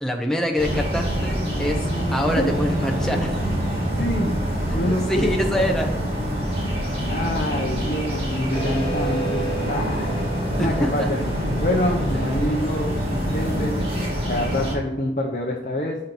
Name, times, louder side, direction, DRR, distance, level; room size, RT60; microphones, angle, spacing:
voice 1, 0.0-1.8 2.1-3.5 4.7-6.0 6.3-6.4 10.6-11.1 12.1-12.4, equal, 5° left, 1 dB, 0.7 m, -25 dB
sound 1, 0.6-14.7, equal, 30° right, 1.6 m, -25 dB
voice 2, 4.0-4.4 4.7-5.8 7.1-10.2 10.6-11.2 11.6-13.8 14.3-16.0, left 1 dB, 50° left, -1 dB, 0.8 m, -26 dB
sound 2, 8.5-13.6, right 2 dB, 30° left, 2.1 m, -34 dB
5.6 x 4.4 x 5.3 m, 0.91 s
head